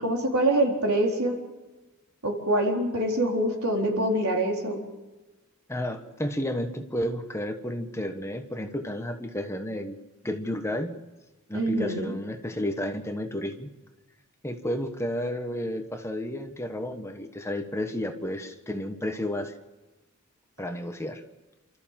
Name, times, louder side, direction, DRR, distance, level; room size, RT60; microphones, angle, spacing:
voice 1, 0.0-1.3 2.2-4.8 11.5-12.1, right 1 dB, 75° right, 1 dB, 4.1 m, -25 dB
voice 2, 5.7-10.0 10.2-10.9 11.5-13.7 14.4-19.5 20.6-21.2, left 1 dB, 10° left, 6 dB, 1.3 m, -32 dB
28.5 x 14.0 x 7.5 m, 1.1 s
head